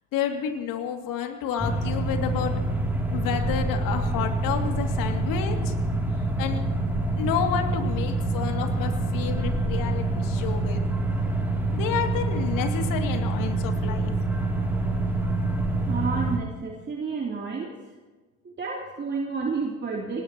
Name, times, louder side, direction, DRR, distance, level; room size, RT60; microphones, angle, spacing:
voice 1, 0.1-2.5 3.1-5.7 6.4-6.6 7.2-10.8 11.7-14.1, left 8 dB, 50° left, 4 dB, 2.4 m, -30 dB
sound 1, 1.6-16.4, right 2 dB, 5° right, 2.8 m, -26 dB
voice 2, 15.9-17.7 18.4-20.2, right 4 dB, 25° right, -2 dB, 3.0 m, -30 dB
26.0 x 18.5 x 2.9 m, 1.2 s
hypercardioid pair, 75°, 42 cm